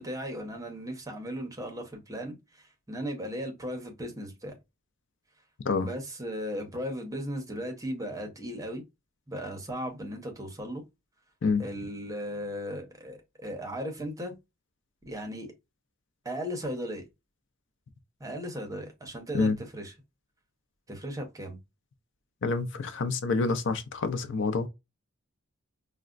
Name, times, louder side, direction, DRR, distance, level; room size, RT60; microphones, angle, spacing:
voice 1, 0.0-4.6 5.8-8.8 9.3-10.8 11.6-14.4 15.0-15.5 16.2-17.1 18.2-19.9 20.9-21.6, equal, 15° right, 0.8 m, -36 dB
voice 2, 22.4-24.7, left 4 dB, 60° left, 0.5 m, -27 dB
4.7 x 2.1 x 2.4 m
head